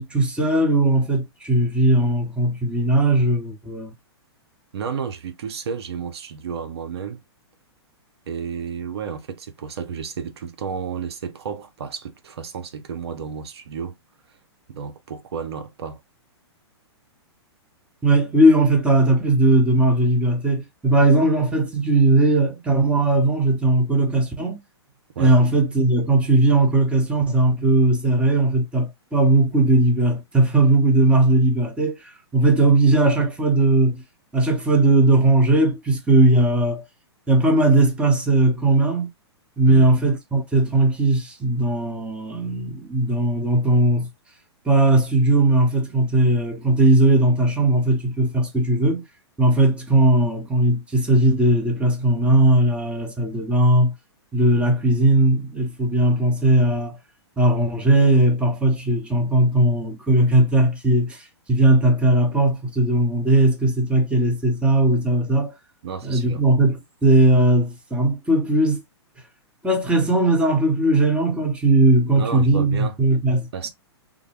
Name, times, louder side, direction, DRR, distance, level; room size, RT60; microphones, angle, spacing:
voice 1, 0.0-3.9 18.0-24.6 25.2-34.0 34.3-36.8 37.3-39.1 39.6-44.1 44.6-49.0 49.4-53.9 54.3-57.0 57.4-65.5 66.0-68.8 69.6-73.5, right 2 dB, 10° right, 1.0 m, -18 dB
voice 2, 4.7-7.2 8.3-13.9 14.7-16.0 25.2-25.4 39.7-40.0 65.8-66.4 72.2-73.0 73.5-73.7, right 6 dB, 70° right, 0.8 m, -32 dB
3.6 x 2.2 x 3.4 m
hypercardioid pair, 125°, 14 cm